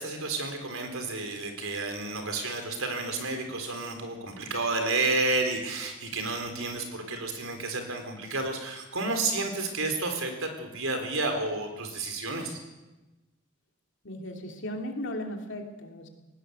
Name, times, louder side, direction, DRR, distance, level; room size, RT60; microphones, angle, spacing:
voice 1, 0.0-12.6, right 3 dB, 75° right, 5 dB, 4.0 m, -31 dB
voice 2, 14.0-16.1, left 1 dB, 55° left, 3 dB, 3.0 m, -36 dB
19.0 x 17.0 x 8.1 m, 1.1 s
head